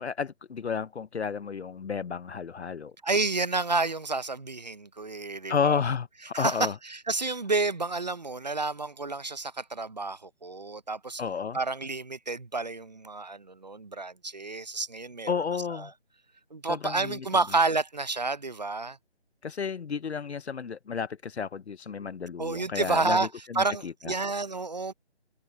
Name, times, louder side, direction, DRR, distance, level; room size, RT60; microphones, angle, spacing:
voice 1, 0.0-2.9 5.5-6.7 11.2-11.6 15.3-15.9 16.6-17.3 19.4-24.1, left 6 dB, 75° left, 0.7 m, -32 dB
voice 2, 3.0-5.8 6.3-11.2 11.5-15.3 15.7-15.9 16.5-19.0 22.4-23.3 23.5-24.9, right 3 dB, 40° right, 0.7 m, -30 dB
figure-of-eight pair, 170°, 33 cm